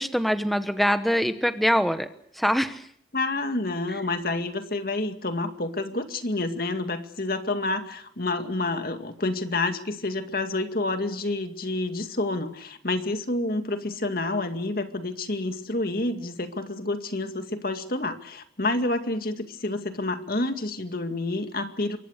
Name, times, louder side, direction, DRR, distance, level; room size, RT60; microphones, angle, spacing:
voice 1, 0.0-2.1 2.3-2.9 3.9-4.0, equal, ahead, 9 dB, 1.1 m, -24 dB
voice 2, 3.1-22.0, left 2 dB, 55° left, 7 dB, 2.2 m, -29 dB
26.5 x 23.0 x 6.6 m, 0.67 s
head